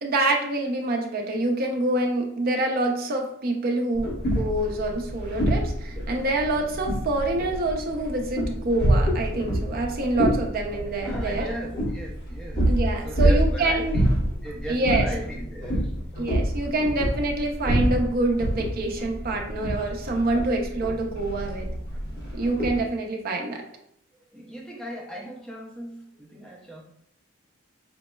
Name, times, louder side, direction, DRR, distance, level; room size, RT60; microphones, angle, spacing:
voice 1, 0.0-11.5 12.7-14.0 14.7-15.1 16.2-21.7 22.3-23.7, right 2 dB, 45° right, 2 dB, 0.5 m, -26 dB
sound 1, 3.9-22.8, equal, 50° left, 1.2 m, -27 dB
voice 2, 11.0-16.0 24.3-26.8, right 1 dB, 5° left, -3 dB, 0.6 m, -37 dB
5.1 x 2.0 x 2.2 m, 0.72 s
head